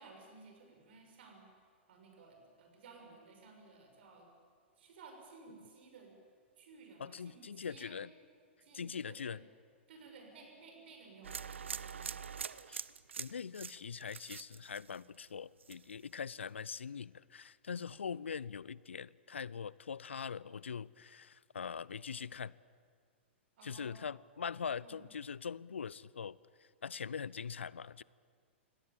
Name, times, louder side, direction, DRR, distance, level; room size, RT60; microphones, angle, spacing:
voice 1, 0.0-1.4 1.9-4.3 4.8-6.1 6.6-8.0 8.6-9.4 9.9-12.3 23.6-24.0 24.8-25.0, right 4 dB, 60° right, 3 dB, 6.4 m, -56 dB
voice 2, 7.0-8.1 8.7-9.4 12.7-12.8 13.2-22.5 23.6-26.4 26.8-28.0, left 6 dB, 80° left, 22 dB, 0.5 m, -42 dB
sound 1, 11.2-15.3 15.6-16.1, right 6 dB, 80° right, 0.7 m, -44 dB
24.5 x 17.5 x 8.9 m, 2.1 s
figure-of-eight pair, 110°, 6 cm